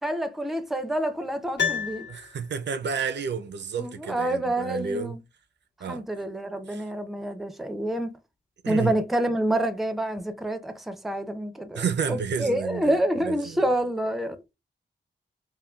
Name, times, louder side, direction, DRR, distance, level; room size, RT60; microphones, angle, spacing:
voice 1, 0.0-2.1 3.8-5.2 5.9-8.1 8.7-11.8 12.1-14.4, right 1 dB, ahead, 0.4 m, -27 dB
Piano, 1.6-2.8 3.1-3.2, left 7 dB, 65° left, 1.0 m, -30 dB
voice 2, 2.1-5.2 5.8-6.0 6.7-6.8 8.6-8.9 11.7-13.7, right 6 dB, 65° right, 0.4 m, -31 dB
3.6 x 2.2 x 2.2 m
wide cardioid pair, 80°, 20 cm